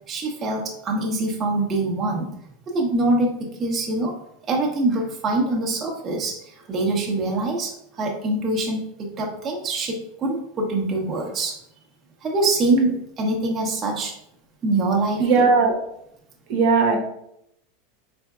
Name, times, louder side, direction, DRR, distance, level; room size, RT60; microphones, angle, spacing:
voice 1, 0.1-2.3 2.7-4.1 4.5-11.6 12.2-14.1 14.6-15.5, right 2 dB, 30° right, -1 dB, 0.8 m, -24 dB
voice 2, 15.2-15.7 16.5-17.0, right 4 dB, 60° right, 1 dB, 0.9 m, -17 dB
4.4 x 3.4 x 2.3 m, 0.76 s
hypercardioid pair, 100°, 0 cm